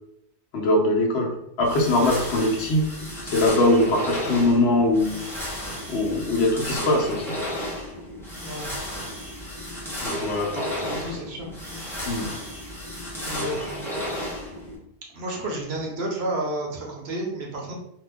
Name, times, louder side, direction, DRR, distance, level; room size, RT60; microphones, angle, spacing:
voice 1, 0.5-2.9 3.2-5.2 5.9-7.3 10.0-11.2 12.0-12.3, left 1 dB, 65° left, -1 dB, 0.9 m, -22 dB
sound 1, 1.6-14.8, equal, 5° left, 0.6 m, -33 dB
voice 2, 10.9-11.5 13.3-13.9 15.1-17.7, right 1 dB, 65° right, -1 dB, 0.9 m, -31 dB
2.7 x 2.2 x 3.4 m, 0.77 s
omnidirectional pair, 1.2 m